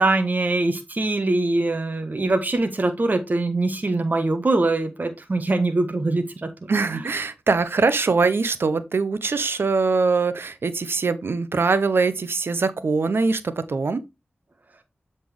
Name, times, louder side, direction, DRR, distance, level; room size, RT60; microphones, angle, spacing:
voice 1, 0.0-6.5 7.0-7.1, right 2 dB, 45° right, 1.3 m, -23 dB
voice 2, 6.7-14.0, right 4 dB, 75° right, 0.8 m, -22 dB
7.6 x 4.2 x 3.5 m
wide cardioid pair, 60°, 4 cm